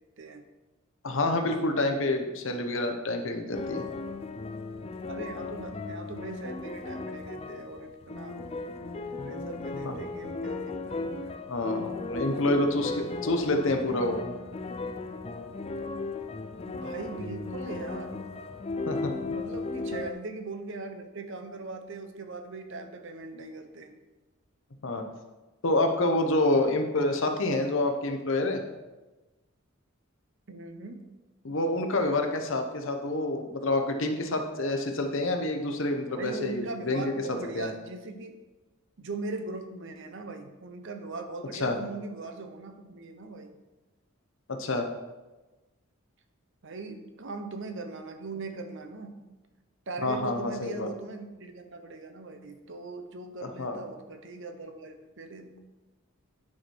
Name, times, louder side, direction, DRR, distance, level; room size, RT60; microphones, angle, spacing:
voice 1, 1.0-3.9 9.8-9.9 11.5-14.2 18.9-19.1 24.8-25.0 25.6-28.6 31.4-37.1 37.5-37.7 41.6-41.8 44.5-44.9 50.0-50.9 53.6-53.8, left 2 dB, 60° left, 5 dB, 0.9 m, -27 dB
sound 1, 3.5-20.1, left 3 dB, 30° left, 0.4 m, -36 dB
voice 2, 5.1-8.5 9.2-11.5 12.2-12.4 12.7-13.4 16.7-18.2 19.3-24.0 30.5-31.0 36.1-38.3 39.0-43.6 46.6-49.2 49.9-55.6, right 3 dB, 60° right, 6 dB, 0.8 m, -40 dB
9.6 x 4.7 x 4.5 m, 1.1 s
head